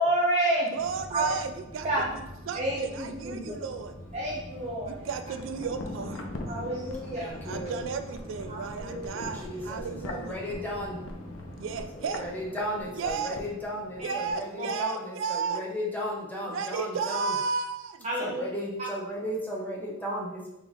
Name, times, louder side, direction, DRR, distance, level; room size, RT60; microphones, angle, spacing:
voice 1, 0.0-0.7 1.1-1.2 1.8-2.0 2.5-3.4 4.1-4.9 6.5-7.3 8.5-9.3 14.0-14.2 14.6-14.8 18.0-18.5, right 1 dB, 35° right, -6 dB, 0.7 m, -29 dB
sound 1, 0.7-11.8, left 1 dB, 30° left, 1.1 m, -45 dB
voice 2, 0.7-1.9 2.1-3.9 4.9-6.3 7.4-10.4 11.5-12.2 13.0-13.4 14.0-15.6 16.5-18.1, right 5 dB, 70° right, 8 dB, 0.3 m, -33 dB
sound 2, 5.4-14.4 14.7-14.8, left 2 dB, 75° left, 0.6 m, -42 dB
voice 3, 7.1-7.8 8.9-11.0 11.9-17.4 18.2-20.5, equal, 10° left, -4 dB, 0.8 m, -35 dB
3.7 x 3.0 x 4.0 m, 0.91 s
head